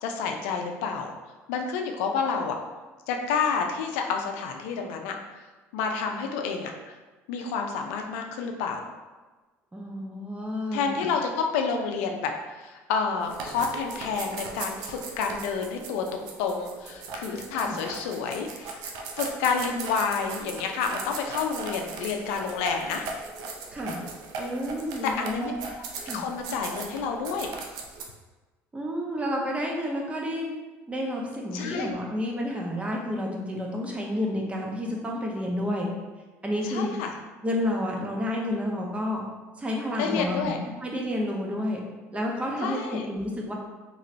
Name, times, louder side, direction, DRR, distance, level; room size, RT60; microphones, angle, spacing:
voice 1, 0.0-1.1 1.5-2.6 3.1-5.2 5.7-6.7 7.3-8.8 10.7-18.8 19.2-23.1 25.0-25.5 26.1-27.5 31.5-32.0 36.6-37.2 40.0-40.6 42.6-43.1, left 5 dB, 85° left, 3 dB, 0.4 m, -29 dB
voice 2, 9.7-11.1 17.6-17.8 23.7-24.0 24.4-25.5 26.0-26.3 28.7-30.5 30.9-35.9 36.4-36.9 37.4-39.2 39.6-41.8 42.1-43.5, left 1 dB, 20° right, -1 dB, 0.7 m, -30 dB
sound 1, 13.2-28.0, right 4 dB, 75° right, 0.5 m, -38 dB
3.0 x 2.9 x 2.5 m, 1.2 s
supercardioid pair, 80°, 7 cm